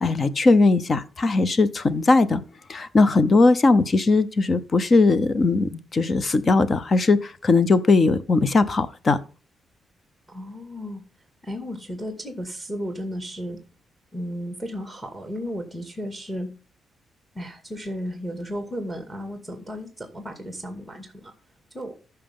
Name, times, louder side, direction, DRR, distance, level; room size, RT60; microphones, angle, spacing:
voice 1, 0.0-2.4 2.7-9.2, left 3 dB, 35° left, 15 dB, 0.8 m, -19 dB
voice 2, 10.3-11.0 11.5-13.6 14.1-16.5 17.4-21.3 21.7-21.9, equal, ahead, 5 dB, 2.3 m, -34 dB
14.0 x 5.8 x 3.8 m, 0.37 s
cardioid pair, 125°, 0 cm